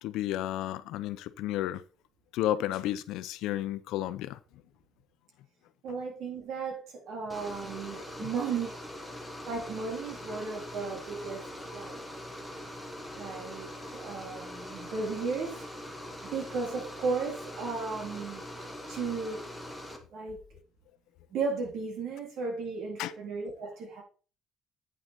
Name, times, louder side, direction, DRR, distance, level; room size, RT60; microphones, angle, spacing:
voice 1, 0.0-1.8 2.3-4.4 8.0-8.3 23.0-23.1, left 13 dB, 85° left, 0.6 m, -32 dB
voice 2, 5.8-8.8 9.5-11.4 11.7-12.0 13.1-15.6 16.2-18.4 18.9-19.4 20.1-20.4 21.3-24.0, right 4 dB, 65° right, 3.1 m, -35 dB
sound 1, 7.3-20.0, left 1 dB, ahead, 1.2 m, -42 dB
8.9 x 6.3 x 4.3 m
cardioid pair, 175°, 0 cm